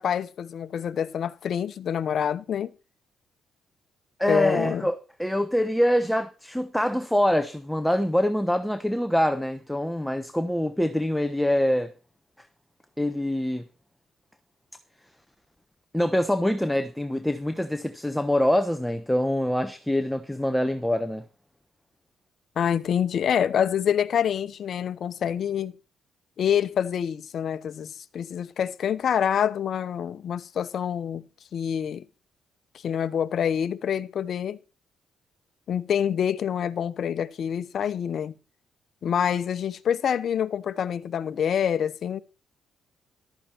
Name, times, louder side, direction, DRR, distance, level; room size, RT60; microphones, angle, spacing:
voice 1, 0.0-2.7 4.3-4.9 22.6-25.7 26.4-31.3 31.5-32.1 32.8-34.6 35.7-38.3 39.0-42.2, left 8 dB, 60° left, 1.0 m, -26 dB
voice 2, 4.2-11.9 13.0-13.6 15.9-21.2, left 1 dB, 5° left, 1.0 m, -25 dB
14.5 x 12.5 x 4.5 m
cardioid pair, 90°, 0 cm